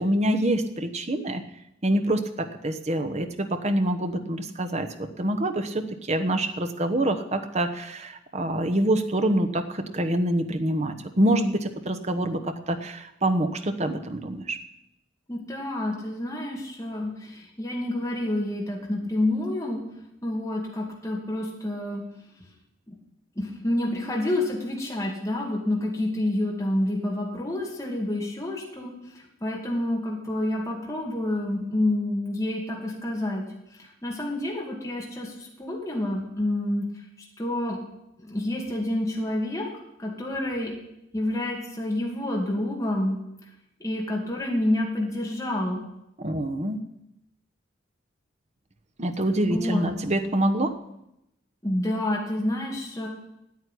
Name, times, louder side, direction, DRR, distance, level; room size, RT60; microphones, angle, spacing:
voice 1, 0.0-1.4 1.8-14.6 46.2-46.8 49.0-50.7, right 1 dB, 35° right, 7 dB, 1.1 m, -26 dB
voice 2, 15.3-19.8 20.2-22.0 22.9-23.0 23.4-33.4 33.7-37.0 37.4-37.8 38.2-39.7 40.0-40.7 41.1-43.2 43.8-45.8 49.5-49.9 51.6-53.1, left 1 dB, 15° left, -2 dB, 2.4 m, -28 dB
9.5 x 8.7 x 9.9 m, 0.84 s
head